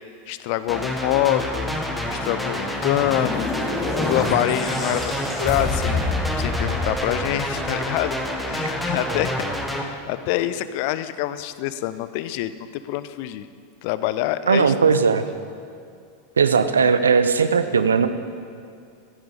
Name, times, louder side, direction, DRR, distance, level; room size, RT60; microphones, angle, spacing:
voice 1, 0.3-1.7 2.1-3.5 4.0-6.0 6.4-8.2 8.5-13.5 13.8-14.7, left 14 dB, 50° left, 13 dB, 0.5 m, -26 dB
sound 1, 0.7-9.8, equal, ahead, 1.3 m, -28 dB
sound 2, 2.6-8.0, left 3 dB, 15° left, 2.1 m, -28 dB
voice 2, 14.5-15.2 16.4-18.1, right 5 dB, 75° right, 10 dB, 0.6 m, -18 dB
14.5 x 9.5 x 5.0 m, 2.3 s
figure-of-eight pair, 85°, 0 cm